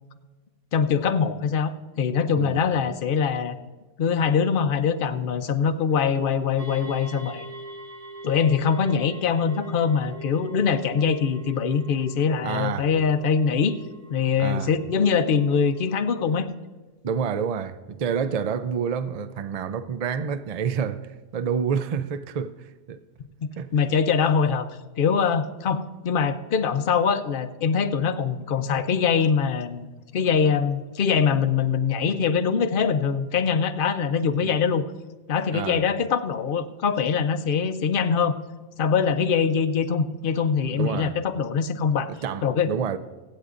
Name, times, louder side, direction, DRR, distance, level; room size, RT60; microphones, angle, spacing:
voice 1, 0.7-1.7 2.0-3.6 4.0-7.5 8.2-13.8 14.1-16.5 23.4-24.7 25.0-29.9 30.1-34.8 35.3-38.4 38.8-42.1 42.4-42.7, left 6 dB, 50° left, 0.8 m, -23 dB
sound 1, 6.6-16.4, right 1 dB, 35° right, 0.9 m, -43 dB
voice 2, 12.4-12.9 14.4-14.7 17.0-23.0 23.6-23.7 34.4-34.5 35.5-35.8 40.7-41.2 42.2-43.0, right 7 dB, 70° right, 0.3 m, -28 dB
24.0 x 8.2 x 2.5 m
omnidirectional pair, 1.3 m